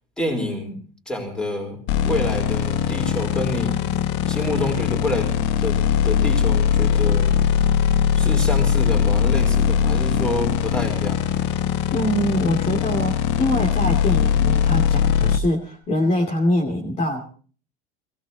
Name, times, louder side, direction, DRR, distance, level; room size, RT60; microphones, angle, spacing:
voice 1, 0.2-0.8 1.1-1.8 2.0-3.8 4.3-7.4 8.1-11.3, left 1 dB, 5° left, 2 dB, 4.4 m, -28 dB
sound 1, 1.9-15.4, left 8 dB, 75° left, 1.3 m, -20 dB
voice 2, 11.9-17.2, equal, 30° left, 1 dB, 2.8 m, -23 dB
21.0 x 17.0 x 4.1 m, 0.40 s
cardioid pair, 175°, 21 cm